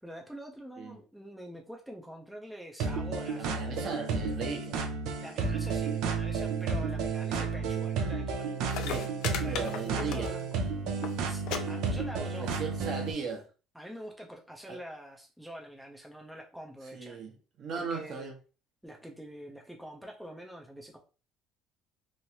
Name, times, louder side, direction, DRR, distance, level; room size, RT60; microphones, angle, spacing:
voice 1, 0.0-3.9 5.2-9.1 9.4-10.5 11.3-12.5 13.7-17.2 17.7-18.3 18.8-21.0, equal, ahead, 0 dB, 0.5 m, -45 dB
sound 1, 2.8-13.1, right 5 dB, 75° right, 0.5 m, -32 dB
voice 2, 3.3-4.8 8.8-9.1 9.4-10.3 12.4-13.4 14.7-14.8 16.9-18.3, right 5 dB, 50° right, 2 dB, 0.9 m, -37 dB
sound 2, 8.4-8.5 8.7-10.6 10.9-11.1 11.5-11.6 11.9-12.4 13.2-13.3, left 8 dB, 70° left, 0.4 m, -36 dB
3.1 x 2.5 x 2.8 m, 0.34 s
cardioid pair, 120°, 0 cm